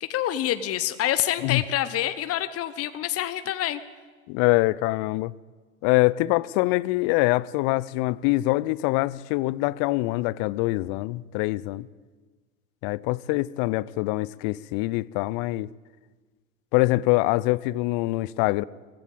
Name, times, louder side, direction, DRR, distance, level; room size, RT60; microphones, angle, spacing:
voice 1, 0.0-3.8, left 12 dB, 35° left, 1.1 m, -27 dB
voice 2, 4.3-5.3 5.8-11.9 12.8-15.7 16.7-18.6, left 20 dB, 50° left, 0.7 m, -24 dB
21.0 x 15.5 x 8.9 m
hypercardioid pair, 85°, 41 cm